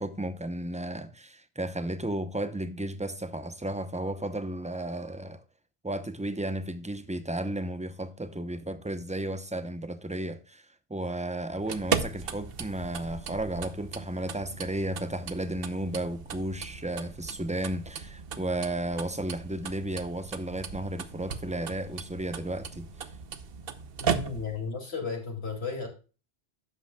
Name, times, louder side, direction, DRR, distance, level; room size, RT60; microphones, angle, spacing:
voice 1, 0.0-5.4 5.8-22.9, right 1 dB, 10° right, 0.7 m, -33 dB
sound 1, 11.5-24.7, right 7 dB, 65° right, 1.0 m, -37 dB
voice 2, 24.0-25.9, left 5 dB, 85° left, 2.8 m, -34 dB
11.5 x 8.1 x 2.3 m
omnidirectional pair, 1.0 m